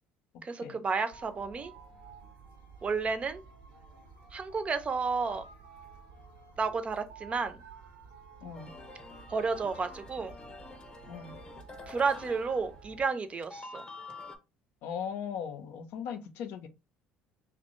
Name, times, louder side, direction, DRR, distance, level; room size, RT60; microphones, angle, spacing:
voice 1, 0.4-1.7 2.8-3.4 4.3-5.4 6.6-7.6 9.3-10.3 11.9-13.8, right 4 dB, 30° right, 0.5 m, -31 dB
sound 1, 1.1-13.1, right 4 dB, 80° right, 0.7 m, -52 dB
voice 2, 8.4-8.7 11.1-11.3 14.8-16.7, left 7 dB, 70° left, 0.5 m, -38 dB
sound 2, 8.5-13.2 13.4-14.4, left 3 dB, 25° left, 0.7 m, -48 dB
2.7 x 2.1 x 3.0 m
hypercardioid pair, 65°, 4 cm